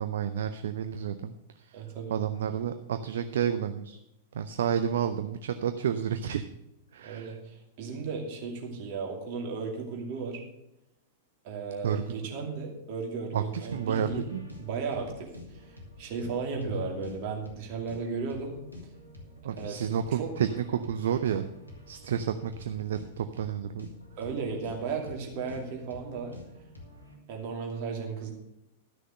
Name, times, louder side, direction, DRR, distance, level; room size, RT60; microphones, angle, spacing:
voice 1, 0.0-1.3 1.6-1.8 2.1-4.0 4.3-6.4 6.9-7.4 11.8-12.1 13.3-14.4 19.4-20.5 20.9-21.4 21.9-23.9, right 8 dB, 60° right, 9 dB, 0.5 m, -30 dB
voice 2, 1.7-2.1 7.0-10.4 11.4-14.3 14.6-18.5 19.6-19.8 20.1-20.3 24.2-26.3 27.3-28.3, right 5 dB, 45° right, 0 dB, 2.6 m, -35 dB
sound 1, 13.7-27.2, left 1 dB, 90° left, 2.0 m, -48 dB
12.0 x 6.4 x 6.5 m, 0.84 s
figure-of-eight pair, 95°, 0 cm